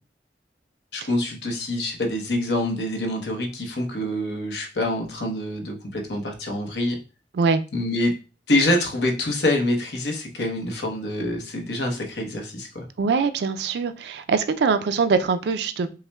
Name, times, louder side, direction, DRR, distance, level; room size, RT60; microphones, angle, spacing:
voice 1, 0.9-7.0 7.7-8.1 8.5-12.8, left 1 dB, 75° left, 2 dB, 0.8 m, -26 dB
voice 2, 13.0-15.9, right 5 dB, 65° right, 11 dB, 0.3 m, -22 dB
5.4 x 2.1 x 2.2 m, 0.33 s
head